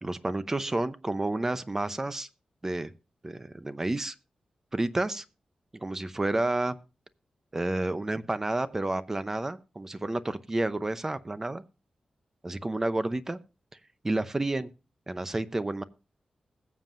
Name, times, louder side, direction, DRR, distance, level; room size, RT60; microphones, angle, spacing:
voice 1, 0.0-2.3 2.6-2.9 3.2-4.2 4.7-5.2 5.8-6.8 7.5-11.6 12.4-13.4 14.0-14.7 15.1-15.8, right 2 dB, 20° right, 13 dB, 0.7 m, -30 dB
20.5 x 7.4 x 2.5 m, 0.30 s
wide cardioid pair, 115°, 2 cm